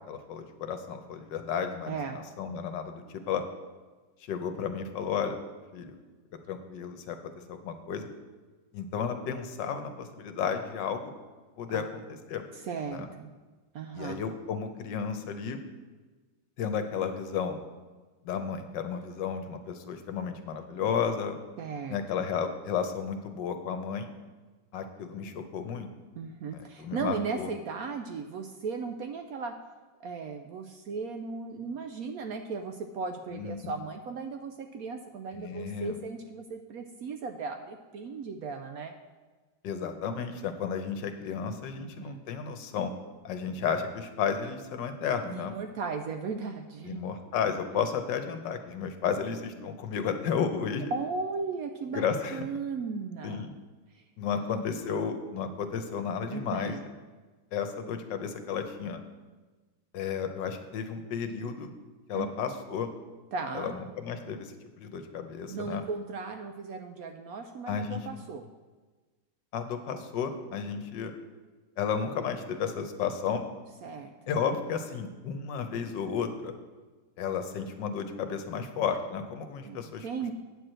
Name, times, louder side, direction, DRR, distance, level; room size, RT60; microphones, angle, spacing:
voice 1, 0.1-2.0 2.4-3.4 4.3-5.4 5.7-5.9 6.5-7.2 7.5-8.1 8.7-11.1 11.6-11.8 12.3-12.4 12.9-13.1 13.9-15.6 16.6-17.6 18.2-21.4 21.9-24.1 24.7-25.9 26.5-27.5 33.3-33.7 35.3-35.9 39.6-42.9 43.2-45.5 46.8-50.9 51.9-52.4 53.2-53.5 54.2-56.8 57.5-59.0 59.9-61.8 62.1-62.9 63.5-65.8 67.7-68.0 69.5-71.1 71.8-73.4 74.3-76.5 77.2-80.1, left 7 dB, 80° left, 7 dB, 1.5 m, -33 dB
voice 2, 1.9-2.2 11.7-11.8 12.5-13.3 13.7-14.2 21.6-22.0 26.2-29.5 30.0-38.9 41.8-42.2 45.3-47.0 47.7-47.8 50.9-52.0 52.3-53.5 53.9-54.0 54.3-54.6 56.3-56.8 62.1-62.3 63.3-63.8 65.5-68.5 70.6-70.7 73.8-74.1 79.6-80.3, right 4 dB, 70° right, 5 dB, 0.9 m, -36 dB
8.9 x 4.8 x 7.6 m, 1.3 s
omnidirectional pair, 2.0 m